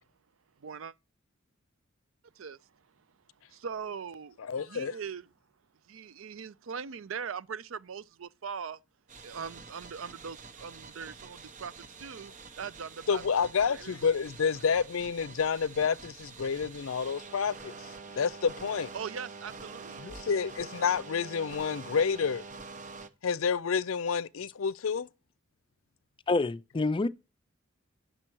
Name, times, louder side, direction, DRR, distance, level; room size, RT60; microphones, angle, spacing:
voice 1, 0.6-0.9 2.4-2.6 3.5-5.2 5.9-8.8 9.2-11.7 12.0-13.2 13.7-14.1 18.9-20.0, right 6 dB, 80° right, 0.5 m, -40 dB
voice 2, 4.4-5.0 13.1-17.7 18.2-18.9 20.0-22.4 23.2-25.1, left 6 dB, 85° left, 0.5 m, -29 dB
sound 1, 9.1-23.1, right 4 dB, 40° right, 0.8 m, -46 dB
voice 3, 26.3-27.1, left 3 dB, 25° left, 0.4 m, -27 dB
9.9 x 6.7 x 4.5 m
head